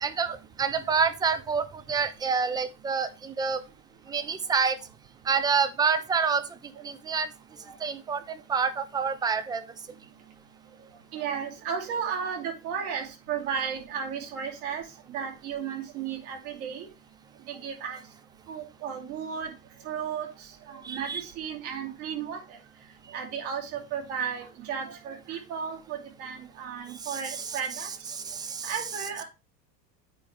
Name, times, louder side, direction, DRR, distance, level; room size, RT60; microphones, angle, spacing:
voice 1, 0.0-3.6 4.1-4.8 5.3-6.4 6.8-7.3 7.8-9.6 20.8-21.2 27.0-27.2 28.1-28.7, right 5 dB, 10° right, 12 dB, 0.3 m, -27 dB
voice 2, 10.8-14.8 15.1-16.9 17.5-18.0 18.5-19.5 19.8-22.6 23.1-27.9 28.6-29.2, right 7 dB, 60° right, 2 dB, 2.6 m, -34 dB
8.8 x 4.6 x 3.3 m, 0.28 s
figure-of-eight pair, 75°, 50 cm